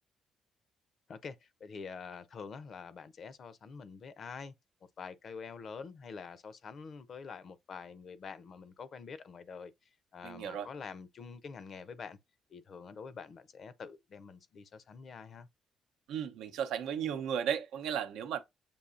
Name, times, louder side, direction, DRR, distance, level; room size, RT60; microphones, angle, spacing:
voice 1, 1.1-4.5 5.0-9.7 10.1-12.2 12.5-15.5, left 5 dB, 55° left, 0.6 m, -46 dB
voice 2, 10.2-10.7 16.1-18.4, right 8 dB, 85° right, 0.6 m, -35 dB
6.9 x 2.7 x 2.5 m
cardioid pair, 90°, 0 cm